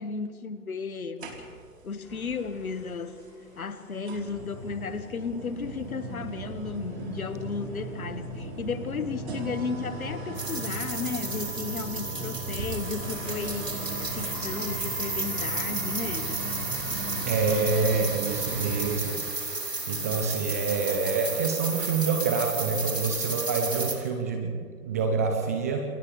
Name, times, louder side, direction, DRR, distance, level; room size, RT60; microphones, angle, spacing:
voice 1, 0.0-1.4 1.8-3.2 3.6-13.7 14.1-16.4, left 5 dB, 60° left, 10 dB, 1.8 m, -34 dB
sound 1, 1.2-1.8 3.2-3.3 4.1-19.1, right 3 dB, 40° right, 4.1 m, -37 dB
sound 2, 2.0-17.9, left 2 dB, 5° left, 2.8 m, -48 dB
sound 3, 10.4-24.0, right 3 dB, 85° right, 4.5 m, -33 dB
voice 2, 17.2-19.2 19.9-25.8, right 4 dB, 10° right, 4 dB, 0.6 m, -27 dB
29.5 x 28.5 x 3.4 m, 2.1 s
figure-of-eight pair, 135°, 48 cm